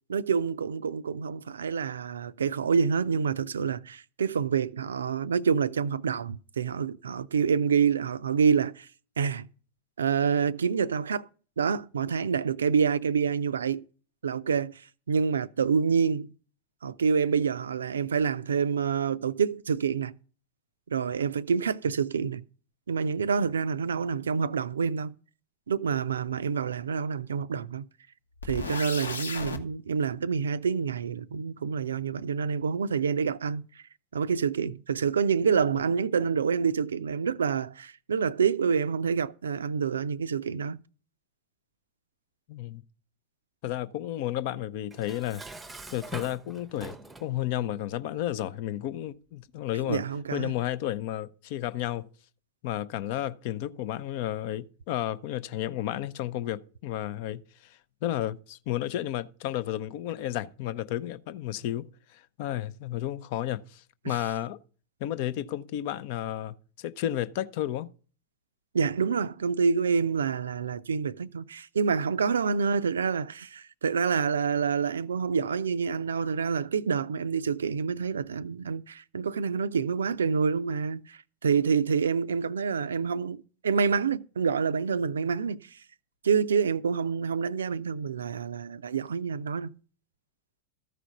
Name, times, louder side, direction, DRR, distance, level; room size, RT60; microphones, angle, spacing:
voice 1, 0.1-8.9 9.2-9.5 10.0-11.3 11.6-13.8 14.2-14.8 15.1-16.3 16.8-20.1 20.9-22.4 22.9-25.1 25.7-27.8 28.4-33.7 34.1-40.8 49.9-50.5 64.0-64.1 68.7-85.7 86.2-89.8, right 6 dB, 70° right, 0.4 m, -27 dB
sound 1, 28.4-29.6, left 3 dB, 75° left, 1.0 m, -34 dB
voice 2, 42.5-42.8 43.6-45.4 45.9-50.0 50.3-52.1 52.6-64.6 65.0-67.9, left 12 dB, 50° left, 0.5 m, -32 dB
Dishes pots and pans, 44.9-47.4, right 2 dB, 10° right, 0.7 m, -43 dB
14.0 x 5.0 x 5.8 m
figure-of-eight pair, 90°, 0 cm